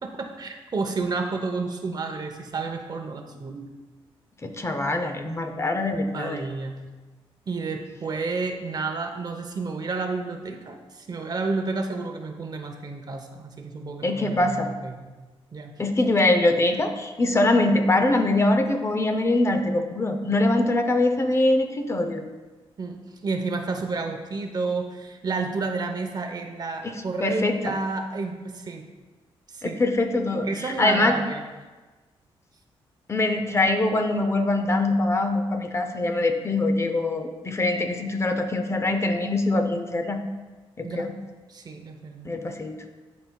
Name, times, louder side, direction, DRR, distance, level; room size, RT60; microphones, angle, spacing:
voice 1, 0.0-3.7 6.1-6.8 7.5-15.1 15.5-15.7 22.8-28.8 29.5-29.8 30.4-31.4 37.7-37.9 40.8-41.1 41.5-42.3, right 3 dB, 40° right, 4 dB, 0.7 m, -31 dB
voice 2, 4.4-6.5 14.0-14.7 15.8-22.2 26.8-26.9 27.2-27.7 29.6-31.1 33.1-40.2 40.8-41.1 42.2-42.7, left 2 dB, 25° left, 6 dB, 0.6 m, -23 dB
11.5 x 4.3 x 2.3 m, 1.3 s
cardioid pair, 90°, 10 cm